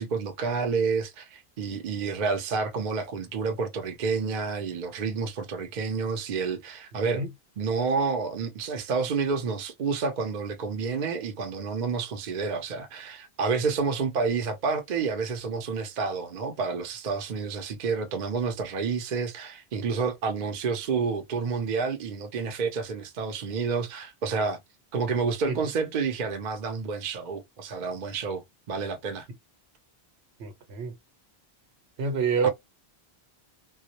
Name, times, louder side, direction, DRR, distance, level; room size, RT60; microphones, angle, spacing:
voice 1, 0.0-7.2 7.6-24.6 24.9-28.4 28.7-29.3 32.4-32.5, right 5 dB, 50° right, 0.6 m, -29 dB
voice 2, 30.4-30.9 32.0-32.5, right 5 dB, 80° right, 1.0 m, -27 dB
2.2 x 2.1 x 2.7 m
omnidirectional pair, 1.1 m